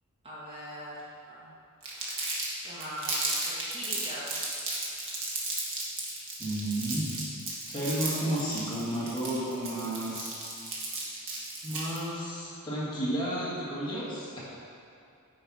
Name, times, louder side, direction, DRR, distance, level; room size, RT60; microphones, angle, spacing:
voice 1, 0.2-1.5 2.6-4.3, equal, 25° right, -8 dB, 1.4 m, -41 dB
Crumpling crinkling, 1.8-12.0, right 3 dB, 60° right, 1.6 m, -34 dB
voice 2, 6.4-7.2 7.7-10.3 11.6-14.4, right 1 dB, 20° left, -9 dB, 1.9 m, -32 dB
9.5 x 5.4 x 4.2 m, 2.6 s
head